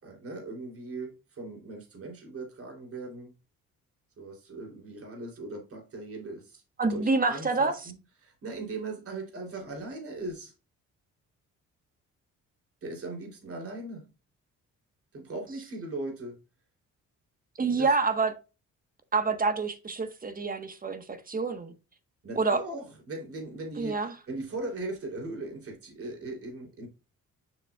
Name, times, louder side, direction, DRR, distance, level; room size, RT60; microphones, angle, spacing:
voice 1, 0.0-3.3 4.2-6.6 6.9-7.9 8.2-10.5 12.8-14.1 15.1-16.4 17.7-17.9 22.2-26.9, right 2 dB, 50° right, 3.4 m, -39 dB
voice 2, 6.8-7.8 17.6-18.3 19.1-21.7 22.4-22.6 23.8-24.1, right 4 dB, 30° right, 1.5 m, -27 dB
7.0 x 6.6 x 2.4 m
cardioid pair, 90°, 30 cm